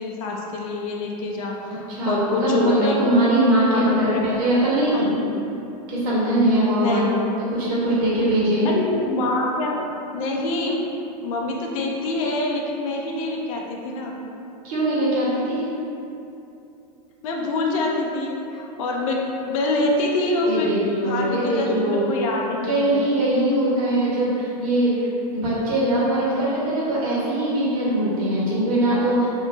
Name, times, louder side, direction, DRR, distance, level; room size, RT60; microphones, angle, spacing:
voice 1, 0.0-3.0 3.7-4.4 4.9-5.2 6.5-7.3 8.6-9.8 10.1-10.8 11.2-14.2 17.2-20.7 21.0-23.0 26.1-26.5, left 2 dB, 55° left, -1 dB, 0.5 m, -25 dB
voice 2, 1.9-5.1 5.9-7.0 7.6-8.7 14.6-15.6 20.4-22.0 22.6-25.1 25.3-29.3, right 1 dB, 60° right, -8 dB, 1.4 m, -21 dB
4.4 x 2.9 x 2.7 m, 2.8 s
supercardioid pair, 170°, 21 cm